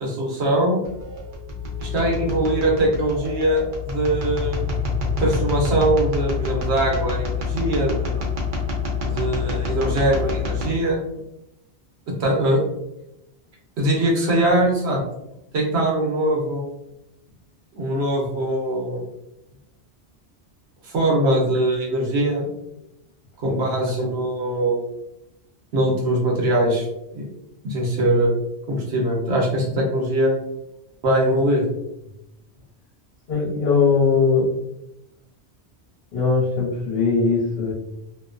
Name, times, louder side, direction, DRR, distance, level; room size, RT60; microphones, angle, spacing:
voice 1, 0.0-0.8 1.8-4.6 5.2-8.2 9.0-11.0 12.2-12.6 13.8-15.0 15.5-16.6 17.7-19.0 20.9-22.5 23.4-24.8 25.7-26.9 27.1-27.2 27.6-28.3 28.7-30.3 31.0-31.6, right 1 dB, 75° right, -2 dB, 1.0 m, -21 dB
sound 1, 0.8-10.7, left 4 dB, 55° right, 0.8 m, -27 dB
voice 2, 33.3-34.5 36.1-37.7, left 4 dB, 65° left, -4 dB, 1.0 m, -20 dB
2.6 x 2.1 x 2.4 m, 0.86 s
omnidirectional pair, 1.1 m